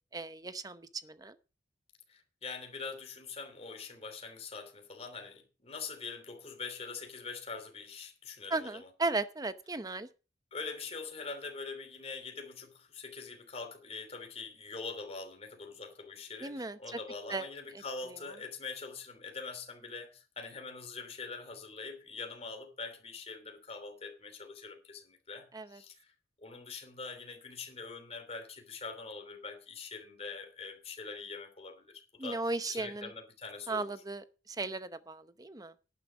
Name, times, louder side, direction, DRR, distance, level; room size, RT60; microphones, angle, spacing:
voice 1, 0.1-1.4 8.5-10.1 16.4-17.0 17.3-17.5 25.5-25.8 32.2-33.1 33.7-35.7, right 3 dB, 20° right, 0.8 m, -36 dB
voice 2, 2.1-8.9 10.5-26.1 26.4-32.4 32.7-33.9, left 4 dB, 35° left, 3.1 m, -44 dB
11.5 x 9.8 x 5.1 m
head